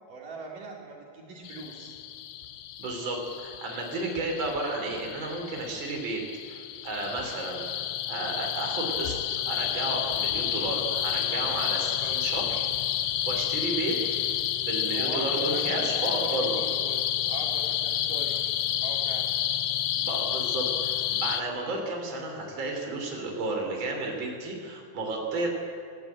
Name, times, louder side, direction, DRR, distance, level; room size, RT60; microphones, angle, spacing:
voice 1, 0.1-2.0 12.0-12.1 14.9-19.3, right 3 dB, 70° right, -1 dB, 4.6 m, -40 dB
sound 1, 1.5-21.4, left 11 dB, 75° left, 2.3 m, -30 dB
voice 2, 2.8-12.6 13.3-14.0 14.7-16.5 19.9-25.5, right 2 dB, 35° right, 1 dB, 4.0 m, -32 dB
26.5 x 15.0 x 8.7 m, 2.2 s
omnidirectional pair, 3.9 m